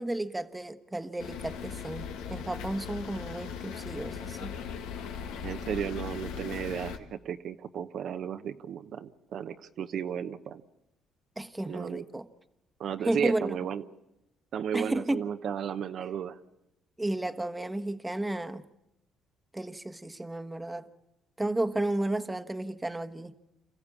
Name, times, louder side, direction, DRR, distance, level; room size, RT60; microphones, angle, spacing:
voice 1, 0.0-4.6 11.4-12.3 13.0-13.6 14.7-15.2 16.0-16.1 17.0-18.6 19.5-20.9 21.4-23.3, right 1 dB, 15° right, 1.2 m, -32 dB
sound 1, 1.2-7.0, left 7 dB, 85° left, 1.6 m, -39 dB
voice 2, 5.4-10.6 11.7-12.0 12.8-13.8 14.5-16.4, right 8 dB, 65° right, 0.9 m, -34 dB
28.0 x 14.5 x 8.6 m
supercardioid pair, 70°, 0 cm